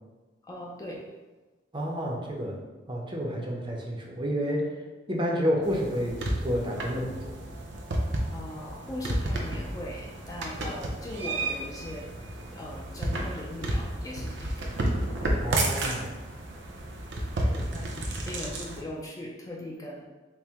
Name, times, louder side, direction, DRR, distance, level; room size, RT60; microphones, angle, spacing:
voice 1, 0.4-1.1 8.3-12.2 12.5-14.7 17.7-20.0, left 1 dB, 20° left, -2 dB, 0.4 m, -39 dB
voice 2, 1.7-2.6 2.9-4.7 5.1-7.3 15.4-16.1 17.4-17.7, equal, 25° right, -1 dB, 0.6 m, -30 dB
sound 1, 5.6-18.8, right 1 dB, 80° right, 0.6 m, -32 dB
4.3 x 2.1 x 3.5 m, 1.2 s
head